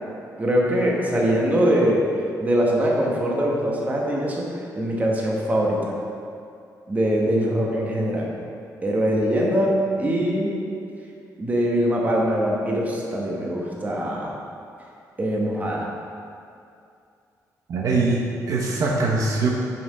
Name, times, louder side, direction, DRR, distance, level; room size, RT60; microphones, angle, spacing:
voice 1, 0.4-2.0 2.4-4.5 4.8-5.8 6.9-8.3 8.8-10.5 11.4-14.3 15.2-15.9, equal, 25° right, -2 dB, 1.2 m, -22 dB
voice 2, 17.7-19.5, right 3 dB, 55° right, -2 dB, 1.0 m, -22 dB
6.8 x 5.6 x 5.1 m, 2.5 s
cardioid pair, 140°, 7 cm